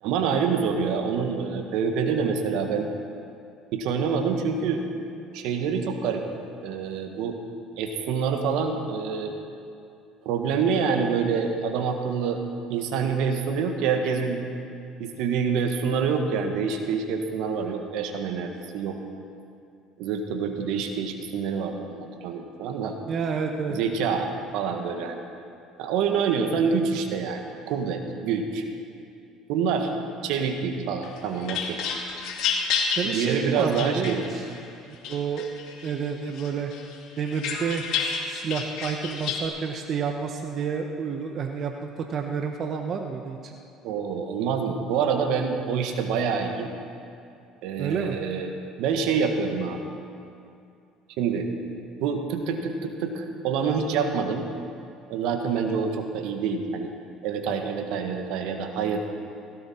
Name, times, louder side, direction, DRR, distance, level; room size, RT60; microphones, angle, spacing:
voice 1, 0.0-2.9 3.7-4.8 5.3-6.2 6.6-7.4 7.8-9.3 10.2-12.4 12.7-14.4 15.0-19.0 20.0-23.0 23.7-25.2 25.8-28.6 29.5-29.9 30.2-31.8 33.0-34.2 43.8-46.7 47.6-49.8 51.2-51.5 52.0-54.5 55.1-56.9 57.2-59.0, right 6 dB, 75° right, 5 dB, 1.6 m, -26 dB
voice 2, 23.1-23.8 33.0-34.5 35.1-35.5 35.8-36.7 37.2-43.5 47.8-48.2, right 6 dB, 50° right, 4 dB, 1.0 m, -29 dB
sound 1, 31.0-34.6 35.0-35.9 36.4-39.5, left 6 dB, 70° left, 2.5 m, -30 dB
16.5 x 16.5 x 4.4 m, 2.5 s
supercardioid pair, 95°, 0 cm